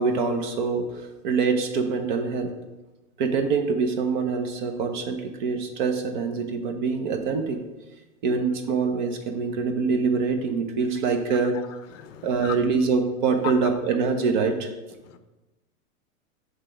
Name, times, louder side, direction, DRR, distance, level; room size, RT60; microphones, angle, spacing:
voice 1, 0.0-2.5 3.2-7.6 8.2-11.5 12.2-14.7, right 5 dB, 35° right, 0.6 m, -25 dB
voice 2, 11.9-12.6 15.1-15.2, left 12 dB, 60° left, 0.6 m, -38 dB
5.8 x 3.3 x 4.8 m
supercardioid pair, 155°, 42 cm